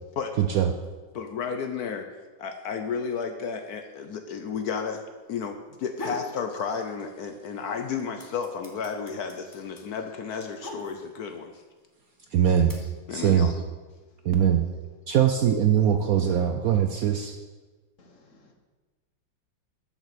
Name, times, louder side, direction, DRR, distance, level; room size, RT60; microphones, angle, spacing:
voice 1, 0.4-0.7 12.3-12.7 13.1-13.5 14.2-14.7 15.1-17.3, right 9 dB, 70° right, 6 dB, 0.9 m, -21 dB
voice 2, 1.1-2.1 2.4-5.0 5.3-11.6 13.1-13.5, left 6 dB, 65° left, 6 dB, 1.1 m, -32 dB
sound 1, 5.7-6.3 6.7-7.4 7.7-11.3 12.1-12.7, left 2 dB, 10° left, 1.2 m, -40 dB
voice 3, 18.0-18.5, left 2 dB, 45° left, 2 dB, 1.4 m, -57 dB
7.4 x 7.4 x 6.8 m, 1.3 s
omnidirectional pair, 2.0 m